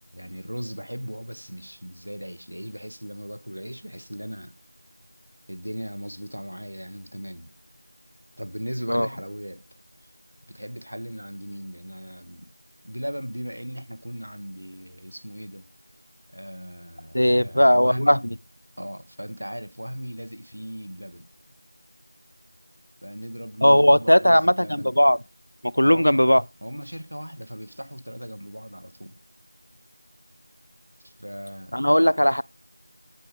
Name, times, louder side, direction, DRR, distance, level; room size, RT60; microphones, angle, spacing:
voice 1, 0.0-4.5 5.5-7.5 8.4-9.6 10.5-12.5 12.8-15.7 16.3-18.2 18.8-21.3 23.0-25.0 25.8-26.3 26.6-29.2 31.0-31.8, equal, 85° right, 1.5 m, -37 dB
voice 2, 17.1-18.2 23.6-25.2 25.6-26.4 31.7-32.4, equal, 75° left, 0.4 m, -18 dB
8.6 x 4.9 x 5.1 m
figure-of-eight pair, 175°, 0 cm